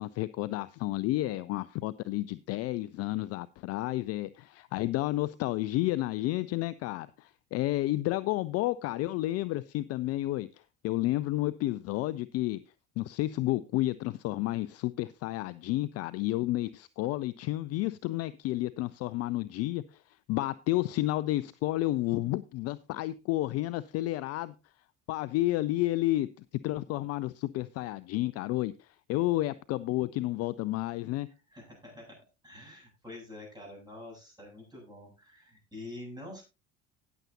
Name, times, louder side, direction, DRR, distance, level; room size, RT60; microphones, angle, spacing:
voice 1, 0.0-10.5 10.8-12.6 13.0-20.0 20.3-24.5 25.1-26.3 26.6-31.3, left 17 dB, 40° left, 18 dB, 0.4 m, -31 dB
voice 2, 31.5-32.2 32.4-36.4, left 2 dB, 10° right, -1 dB, 7.7 m, -46 dB
18.0 x 7.1 x 2.8 m, 0.28 s
figure-of-eight pair, 60°, 39 cm